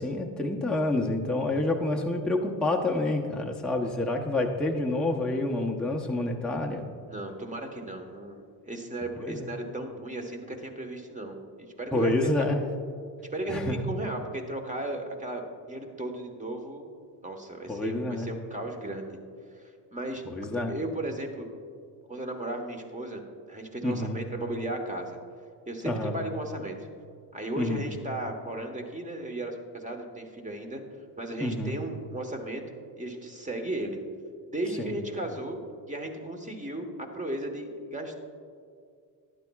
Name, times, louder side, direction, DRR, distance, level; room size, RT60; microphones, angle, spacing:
voice 1, 0.0-6.9 9.2-9.4 11.9-12.6 13.5-13.8 17.7-18.3 20.3-20.7 23.8-24.2 25.8-26.2 27.6-27.9 31.4-31.7 34.8-34.9, left 2 dB, ahead, 0 dB, 0.8 m, -28 dB
voice 2, 7.1-12.1 13.3-16.8 17.2-19.2 19.5-19.6 19.9-20.2 20.7-21.5 22.1-23.2 23.5-25.2 25.7-26.8 27.3-30.8 31.2-32.6 33.0-34.0 34.5-35.6 35.9-38.2, right 1 dB, 15° right, 3 dB, 1.3 m, -35 dB
12.0 x 9.7 x 2.3 m, 2.3 s
supercardioid pair, 75°, 43 cm